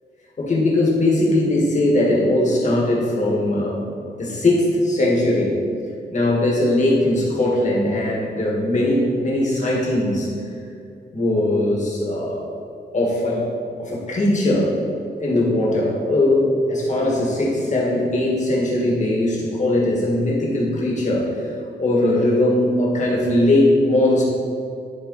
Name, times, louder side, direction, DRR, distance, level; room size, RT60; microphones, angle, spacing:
voice 1, 0.4-3.8 4.2-5.6 6.1-10.3 11.1-12.5 12.9-13.5 13.8-14.7 15.2-21.5 21.8-24.2, left 1 dB, 45° left, -3 dB, 1.8 m, -20 dB
11.0 x 4.1 x 4.0 m, 2.5 s
wide cardioid pair, 145°, 17 cm